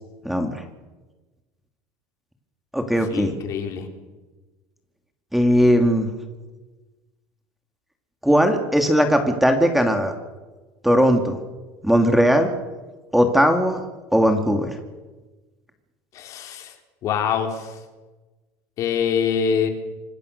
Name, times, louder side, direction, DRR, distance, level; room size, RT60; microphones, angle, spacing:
voice 1, 0.2-0.6 2.7-3.3 5.3-6.1 8.2-10.1 10.8-11.4 11.8-12.5 13.1-13.8 14.1-14.7, equal, ahead, 5 dB, 2.5 m, -18 dB
voice 2, 3.1-3.9 16.1-16.7 17.0-17.8 18.8-19.7, left 7 dB, 50° left, 4 dB, 4.0 m, -24 dB
26.0 x 20.0 x 6.7 m, 1.2 s
supercardioid pair, 130°, 7 cm